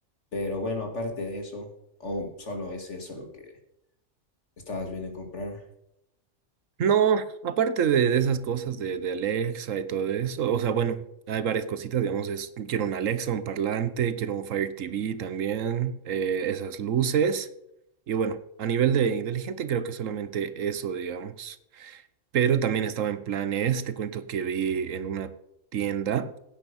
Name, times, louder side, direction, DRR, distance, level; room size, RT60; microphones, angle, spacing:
voice 1, 0.3-1.7 2.0-3.5 4.7-5.6, left 2 dB, 65° left, 2.6 m, -33 dB
voice 2, 6.8-17.5 18.1-22.0 22.3-25.3 25.7-26.3, right 8 dB, 90° right, 1.3 m, -27 dB
16.0 x 9.1 x 5.4 m
omnidirectional pair, 1.3 m